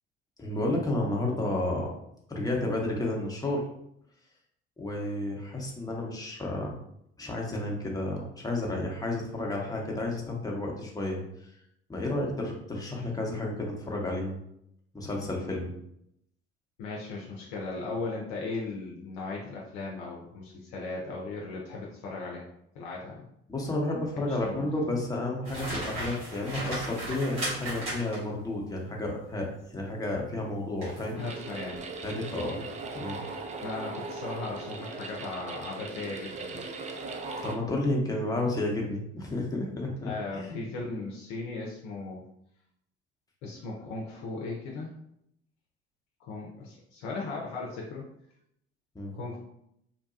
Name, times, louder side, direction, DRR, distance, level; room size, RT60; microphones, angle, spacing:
voice 1, 0.4-1.9 2.3-3.6 4.8-6.8 7.2-11.2 11.9-14.4 14.9-15.7 23.5-31.2 32.0-32.6 32.9-33.2 37.4-40.6 48.9-49.2, left 2 dB, 10° left, -1 dB, 0.8 m, -31 dB
voice 2, 16.8-22.5 22.7-23.3 24.3-24.7 31.1-31.8 33.6-36.6 40.0-42.2 43.4-44.9 46.2-48.0 49.1-49.4, left 3 dB, 65° left, -2 dB, 0.6 m, -37 dB
sound 1, 25.4-28.4 30.8-31.1 31.6-31.8, right 1 dB, 80° right, 1.3 m, -35 dB
sound 2, 31.2-37.6, right 3 dB, 25° right, 0.4 m, -39 dB
2.8 x 2.2 x 2.6 m, 0.75 s
hypercardioid pair, 55°, 31 cm